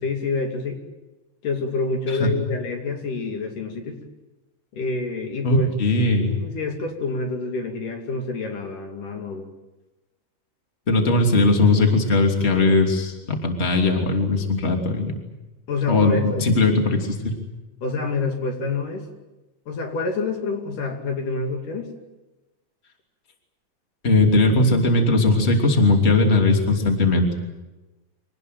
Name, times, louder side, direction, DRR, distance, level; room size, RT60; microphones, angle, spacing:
voice 1, 0.0-0.8 1.4-4.0 4.7-5.7 6.3-9.5 15.7-16.5 17.8-19.1 19.7-21.9, left 3 dB, 70° left, 3 dB, 4.1 m, -27 dB
voice 2, 5.4-6.3 10.9-15.1 15.9-17.3 24.0-27.3, left 2 dB, 20° left, 3 dB, 2.9 m, -19 dB
26.0 x 19.0 x 9.3 m, 1.1 s
omnidirectional pair, 3.9 m